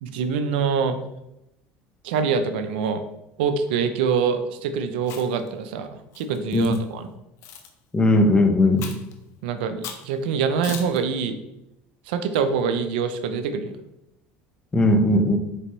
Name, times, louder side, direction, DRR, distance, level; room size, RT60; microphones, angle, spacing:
voice 1, 0.0-1.0 2.0-3.0 3.4-7.1 9.4-11.4 12.1-13.7, right 6 dB, 85° right, 9 dB, 0.4 m, -25 dB
Chewing mastication, 5.0-5.5 6.1-6.8 7.4-7.7 8.8-9.1 9.8-10.1 10.6-11.0, left 7 dB, 60° left, 0.6 m, -37 dB
voice 2, 7.9-8.9 14.7-15.4, left 1 dB, 15° left, 6 dB, 0.5 m, -18 dB
4.1 x 3.4 x 3.0 m, 0.88 s
supercardioid pair, 105°, 5 cm